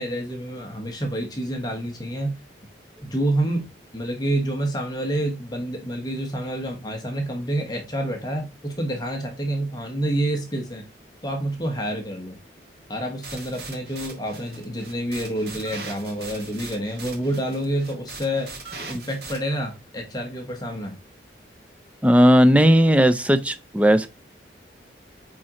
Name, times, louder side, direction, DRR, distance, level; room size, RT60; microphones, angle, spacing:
voice 1, 0.0-2.3 3.0-3.6 3.9-10.8 11.2-12.4 12.9-18.5 18.8-21.0, right 1 dB, 20° left, 1.1 m, -28 dB
sound 1, 13.2-19.4, right 3 dB, 55° right, 1.7 m, -40 dB
voice 2, 22.0-24.1, equal, 5° right, 0.4 m, -16 dB
8.4 x 3.8 x 2.9 m
head